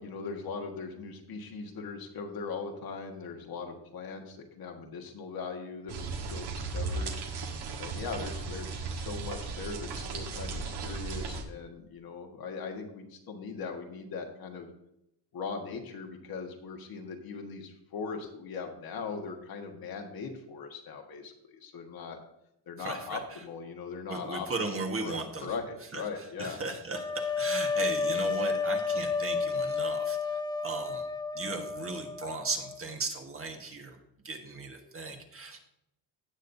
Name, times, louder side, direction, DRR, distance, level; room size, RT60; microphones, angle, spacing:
voice 1, 0.0-7.1 7.8-14.7 15.3-22.2 22.7-26.6, left 5 dB, 55° left, 3 dB, 1.6 m, -40 dB
sound 1, 5.9-11.4, right 4 dB, 65° right, 1.6 m, -36 dB
voice 2, 22.8-23.2 24.1-25.5 25.9-31.1 31.3-34.0 34.2-35.6, right 3 dB, 30° right, 3 dB, 1.5 m, -37 dB
sound 2, 26.9-32.8, left 4 dB, 10° left, 0.4 m, -31 dB
17.0 x 6.5 x 2.7 m, 0.80 s
cardioid pair, 120°, 42 cm